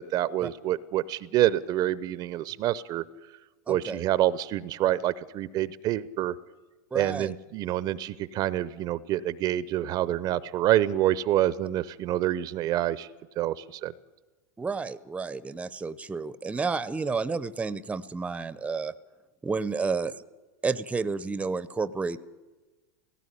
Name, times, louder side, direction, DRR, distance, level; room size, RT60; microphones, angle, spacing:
voice 1, 0.0-3.0 3.7-6.4 6.9-13.1 13.4-13.9, right 13 dB, 45° right, 18 dB, 0.7 m, -27 dB
voice 2, 3.7-4.0 6.9-7.3 14.6-18.9 19.4-20.2 20.6-22.2, right 4 dB, 15° right, 17 dB, 0.8 m, -31 dB
17.0 x 16.0 x 10.0 m, 1.2 s
hypercardioid pair, 105°, 10 cm